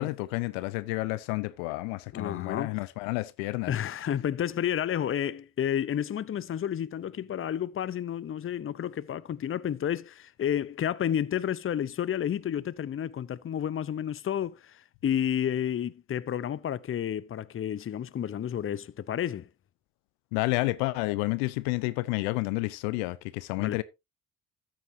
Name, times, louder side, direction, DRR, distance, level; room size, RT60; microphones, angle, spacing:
voice 1, 0.0-3.7 20.3-23.8, left 22 dB, 80° left, 0.7 m, -30 dB
voice 2, 2.1-2.8 3.7-19.5 23.6-23.8, left 9 dB, 35° left, 0.7 m, -31 dB
13.5 x 8.8 x 2.7 m
hypercardioid pair, 55°, 37 cm